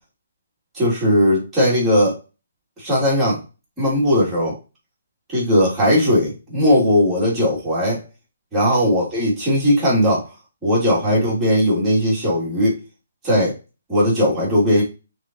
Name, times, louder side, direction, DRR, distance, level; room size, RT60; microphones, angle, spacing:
voice 1, 0.7-2.2 2.8-3.4 3.8-4.5 5.3-8.0 8.5-10.3 10.6-12.8 13.2-13.6 13.9-14.8, equal, 5° right, -9 dB, 3.2 m, -18 dB
8.6 x 4.0 x 3.2 m, 0.31 s
hypercardioid pair, 170°, 0 cm